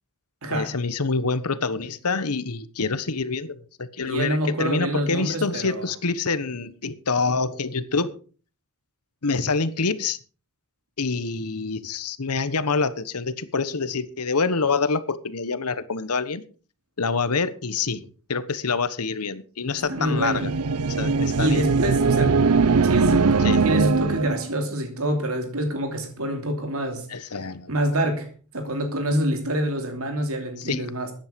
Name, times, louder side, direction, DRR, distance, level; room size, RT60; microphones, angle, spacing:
voice 1, 0.5-8.1 9.2-10.2 11.0-16.4 17.0-18.0 18.3-20.5 21.0-21.6 23.4-23.6 27.1-27.7 30.6-30.9, left 4 dB, 90° left, 15 dB, 1.2 m, -26 dB
voice 2, 4.0-5.9 19.9-20.5 21.4-22.4 22.8-27.1 27.7-28.3 28.5-31.1, right 1 dB, 70° right, 5 dB, 2.9 m, -26 dB
sound 1, 19.8-24.5, right 4 dB, 90° right, 0.7 m, -21 dB
14.5 x 10.5 x 5.2 m, 0.40 s
head